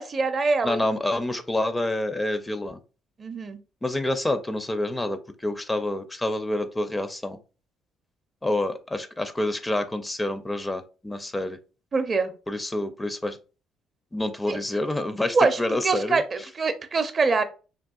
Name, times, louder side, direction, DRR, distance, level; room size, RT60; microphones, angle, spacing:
voice 1, 0.0-0.8 3.2-3.6 11.9-12.3 14.5-14.6 15.3-17.4, right 4 dB, 40° right, 9 dB, 0.5 m, -24 dB
voice 2, 0.6-2.8 3.8-7.4 8.4-11.6 12.5-13.4 14.1-16.2, left 1 dB, 15° left, 9 dB, 0.5 m, -28 dB
3.5 x 2.3 x 2.3 m, 0.33 s
supercardioid pair, 65°, 0 cm